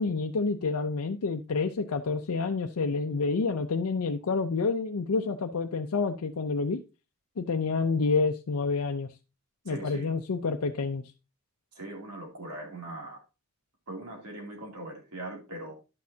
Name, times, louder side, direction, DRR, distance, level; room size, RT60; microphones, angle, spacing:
voice 1, 0.0-6.8 7.4-9.1 9.7-11.0, left 4 dB, 75° left, 0.6 m, -28 dB
voice 2, 9.7-10.1 11.7-13.2 13.9-15.7, right 2 dB, 80° right, 2.7 m, -40 dB
10.5 x 6.4 x 2.7 m
head